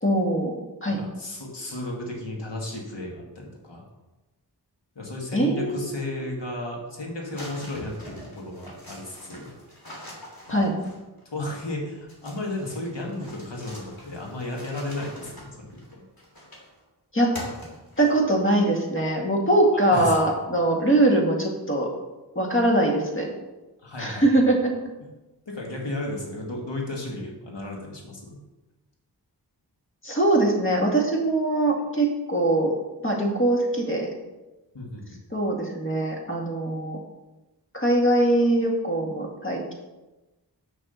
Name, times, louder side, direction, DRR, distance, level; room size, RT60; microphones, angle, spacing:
voice 1, 0.0-1.0 5.3-6.0 10.5-10.7 17.1-17.3 18.0-21.9 22.4-23.3 24.0-24.7 30.0-32.7 33.0-34.1 35.3-37.0 37.7-39.7, right 1 dB, 30° left, -1 dB, 2.1 m, -22 dB
voice 2, 0.9-3.8 5.0-9.5 10.5-10.6 11.3-16.0 19.7-20.2 23.8-24.4 25.5-28.4 34.7-35.0, left 2 dB, 85° left, -1 dB, 1.9 m, -34 dB
sound 1, 7.4-11.2 12.1-16.8 17.3-18.4, equal, 55° left, 3.1 m, -43 dB
6.6 x 6.0 x 5.7 m, 1.1 s
wide cardioid pair, 40°, 41 cm